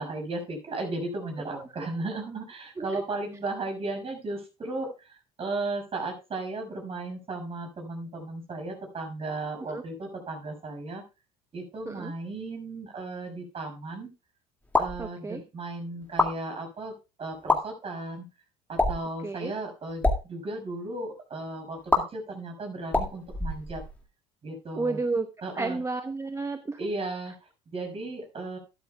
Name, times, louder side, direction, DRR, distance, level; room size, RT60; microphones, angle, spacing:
voice 1, 0.0-11.0 11.5-14.1 14.7-18.3 18.7-23.8 24.4-25.0 25.4-25.8 26.8-27.3 27.7-28.6, right 2 dB, 40° right, 4 dB, 5.9 m, -35 dB
sound 1, 14.6-15.0 16.0-16.3 17.3-17.6 18.7-19.1 19.9-20.2 21.9-22.0 22.9-24.0, left 2 dB, 10° left, 2.2 m, -25 dB
voice 2, 15.0-15.4 19.2-19.5 24.8-25.3 25.5-26.9, right 3 dB, 20° right, 9 dB, 0.8 m, -32 dB
12.5 x 12.0 x 2.3 m, 0.29 s
supercardioid pair, 80°, 16 cm